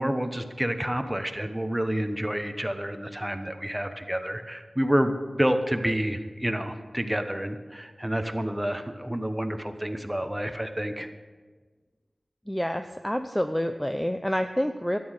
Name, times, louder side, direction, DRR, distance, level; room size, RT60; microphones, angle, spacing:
voice 1, 0.0-11.1, equal, 10° right, 7 dB, 1.0 m, -29 dB
voice 2, 12.5-15.0, equal, 10° left, 7 dB, 0.5 m, -28 dB
12.5 x 9.6 x 6.4 m, 1.4 s
wide cardioid pair, 75°, 0 cm